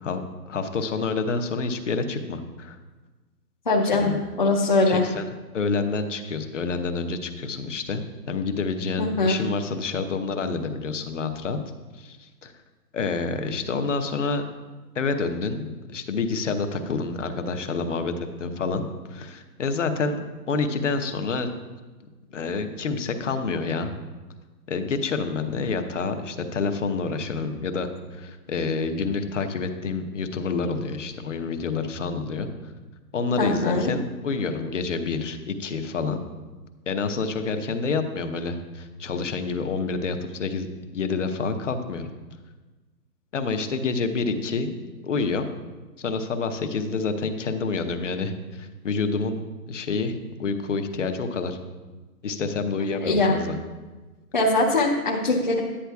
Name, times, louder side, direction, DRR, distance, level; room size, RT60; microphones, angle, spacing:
voice 1, 0.0-2.8 3.9-4.2 4.9-5.3 5.5-11.6 11.9-12.5 12.9-14.4 14.9-18.1 18.4-18.8 19.1-20.2 20.5-21.5 22.3-23.9 24.7-32.5 33.1-36.2 36.9-42.1 43.3-45.5 46.0-49.4 49.7-51.6 52.2-53.6, left 4 dB, 50° left, 7 dB, 0.9 m, -28 dB
voice 2, 3.7-5.0 9.0-9.4 33.4-33.9 53.0-53.3 54.3-55.6, left 2 dB, 30° left, -3 dB, 0.7 m, -21 dB
10.0 x 9.9 x 2.3 m, 1.3 s
hypercardioid pair, 175°, 47 cm